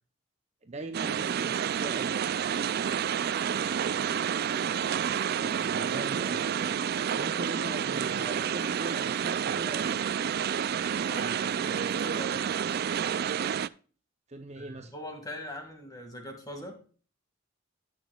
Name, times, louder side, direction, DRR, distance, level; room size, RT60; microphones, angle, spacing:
voice 1, 0.6-2.2 5.1-6.8 7.1-10.0 14.3-14.9, right 2 dB, 30° right, 6 dB, 0.7 m, -41 dB
sound 1, 0.9-13.7, right 8 dB, 45° right, 0.3 m, -29 dB
voice 2, 11.0-12.5 14.6-16.8, equal, 15° left, 4 dB, 2.0 m, -42 dB
18.0 x 6.2 x 2.3 m, 0.39 s
head